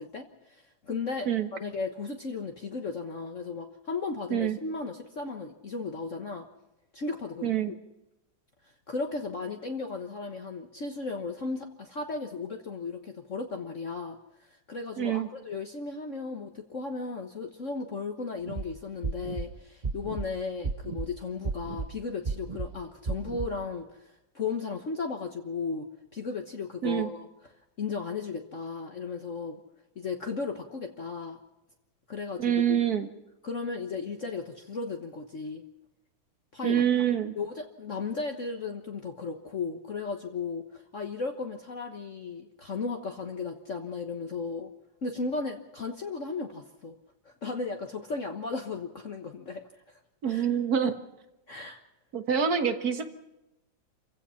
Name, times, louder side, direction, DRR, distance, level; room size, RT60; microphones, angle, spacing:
voice 1, 0.0-6.5 6.9-7.7 8.6-27.3 27.8-29.6 29.9-31.4 32.1-32.8 33.4-35.6 36.5-36.8 37.4-44.7 45.0-47.0 47.2-50.0 50.3-50.5 51.5-51.8, left 4 dB, 45° left, 4 dB, 1.5 m, -35 dB
voice 2, 7.4-7.7 15.0-15.3 26.8-27.1 32.4-33.1 36.6-37.3 50.2-50.9 52.1-53.1, right 8 dB, 55° right, 8 dB, 1.8 m, -26 dB
sound 1, 18.4-18.6 19.0-19.5 19.8-20.3 20.6-21.1 21.4-21.9 22.2-22.7 23.1-23.5, right 4 dB, 30° right, 0.8 m, -32 dB
28.5 x 16.0 x 5.8 m, 0.95 s
omnidirectional pair, 2.0 m